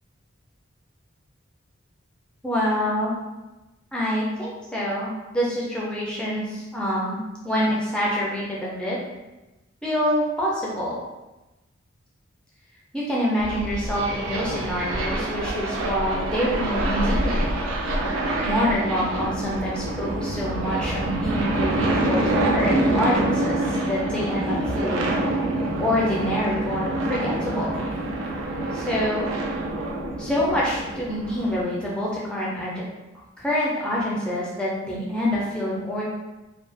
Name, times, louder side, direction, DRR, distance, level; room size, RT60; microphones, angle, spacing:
voice 1, 2.4-3.2 3.9-9.0 9.8-11.0 12.9-17.6 18.4-25.1 25.8-27.8 28.7-29.3 30.2-32.8 33.4-36.0, equal, 5° left, -6 dB, 0.4 m, -26 dB
sound 1, 13.4-31.6, right 1 dB, 80° right, 0.4 m, -26 dB
sound 2, 21.2-22.0 22.7-23.1 24.3-24.7 25.8-26.4 27.6-28.2, right 1 dB, 85° left, 0.9 m, -38 dB
2.3 x 2.2 x 2.5 m, 1.1 s
head